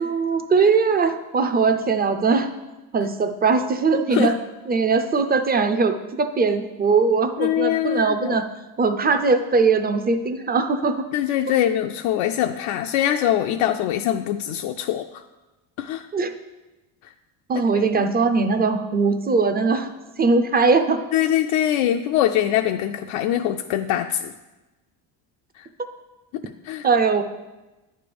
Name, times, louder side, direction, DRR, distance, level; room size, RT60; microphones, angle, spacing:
voice 1, 0.0-2.5 2.9-4.3 4.7-8.5 8.8-11.0 16.1-16.3 17.5-19.9 20.2-21.0 26.8-27.2, right 4 dB, 20° right, 8 dB, 0.4 m, -20 dB
voice 2, 7.4-8.4 11.1-15.0 15.8-16.1 17.7-18.1 21.1-24.3 26.7-26.9, left 11 dB, 80° left, 5 dB, 0.5 m, -23 dB
9.2 x 3.3 x 6.8 m, 1.1 s
cardioid pair, 130°, 48 cm